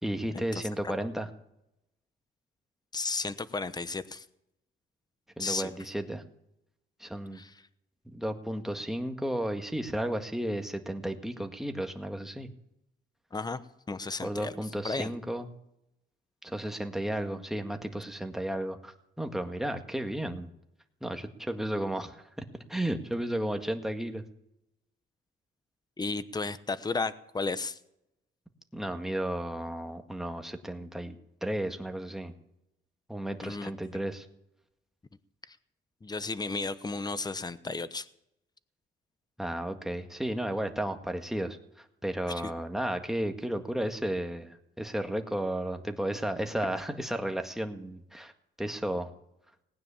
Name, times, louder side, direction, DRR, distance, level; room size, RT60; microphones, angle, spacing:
voice 1, 0.0-1.3 5.4-6.2 7.0-7.4 8.1-12.5 14.2-15.5 16.4-20.5 21.0-22.2 22.7-24.2 28.7-31.2 31.4-32.3 33.1-34.3 39.4-41.6 42.0-48.3 48.6-49.1, right 1 dB, ahead, 5 dB, 1.8 m, -33 dB
voice 2, 2.9-4.2 5.4-5.7 7.3-7.5 13.3-13.6 13.9-14.5 14.8-15.1 26.0-27.8 33.4-33.7 35.5-35.6 36.0-38.1 42.3-42.5, left 3 dB, 20° left, 14 dB, 1.0 m, -33 dB
19.0 x 9.6 x 7.1 m, 0.83 s
cardioid pair, 90°, 20 cm